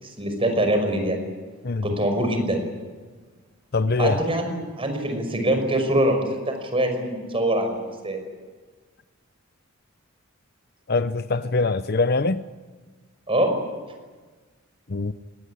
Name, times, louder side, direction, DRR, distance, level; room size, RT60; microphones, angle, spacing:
voice 1, 0.0-1.2 1.8-2.6 4.0-8.2 13.3-13.5, right 1 dB, 25° right, 5.7 m, -24 dB
voice 2, 1.6-2.0 3.7-4.2 10.9-12.4 14.9-15.1, left 3 dB, 50° left, 0.7 m, -23 dB
24.0 x 19.5 x 10.0 m
head